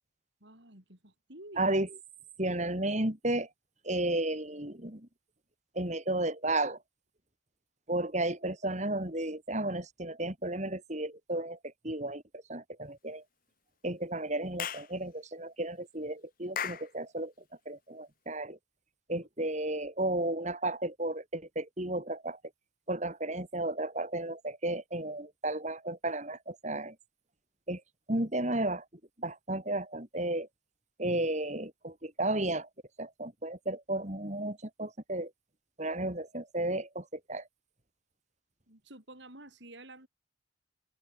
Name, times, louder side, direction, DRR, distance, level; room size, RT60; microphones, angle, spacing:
voice 1, 0.4-1.7 19.4-19.6 38.7-40.1, right 1 dB, 65° right, 7.4 m, -51 dB
voice 2, 1.6-1.9 2.4-3.5 3.8-5.1 5.8-6.8 7.9-12.2 12.5-13.2 13.8-17.3 17.7-18.6 19.1-22.4 22.9-27.0 27.7-27.8 28.1-28.8 29.2-30.5 31.0-32.7 33.0-35.3 35.8-37.4, right 1 dB, 35° right, 3.5 m, -33 dB
Clapping / Chirp tweet, 14.6-14.9 16.5-16.9, left 8 dB, 45° left, 1.5 m, -35 dB
open air
head